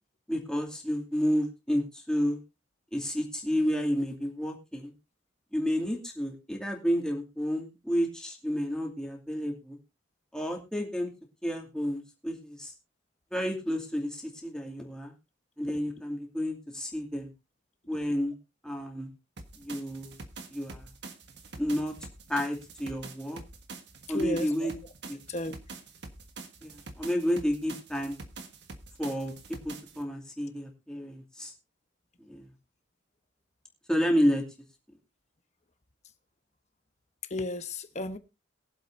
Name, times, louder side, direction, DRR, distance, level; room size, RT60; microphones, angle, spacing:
voice 1, 0.3-2.4 2.9-4.9 5.5-9.8 10.3-11.1 11.4-12.7 13.3-15.1 15.6-17.3 17.9-18.4 18.6-19.1 19.6-20.2 20.5-20.9 21.6-21.9 22.3-23.4 24.1-24.7 25.1-25.2 26.6-28.2 29.0-31.5 32.2-32.5 33.9-34.4, equal, 5° left, 2.5 m, -30 dB
sound 1, 19.4-30.0, right 3 dB, 65° right, 1.5 m, -46 dB
voice 2, 24.1-24.7 25.3-25.5 37.3-38.2, left 1 dB, 40° left, 1.1 m, -34 dB
22.5 x 7.7 x 2.7 m
head